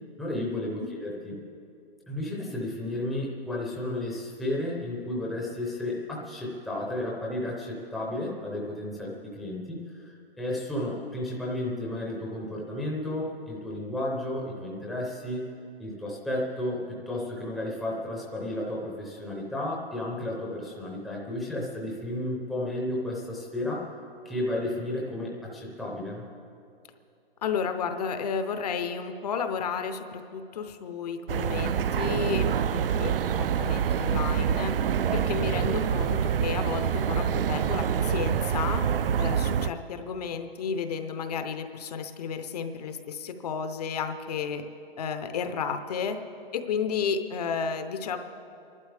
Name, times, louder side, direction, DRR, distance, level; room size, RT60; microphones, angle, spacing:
voice 1, 0.2-1.4 2.1-15.5 15.8-23.9 24.2-26.2, left 1 dB, ahead, -4 dB, 0.6 m, -33 dB
voice 2, 27.4-34.7 35.1-38.8 39.2-44.6 45.0-46.2 46.5-48.2, left 6 dB, 40° left, 8 dB, 0.7 m, -32 dB
sound 1, 31.3-39.7, right 8 dB, 65° right, 0.5 m, -26 dB
26.5 x 11.5 x 3.4 m, 2.6 s
hypercardioid pair, 160°, 30 cm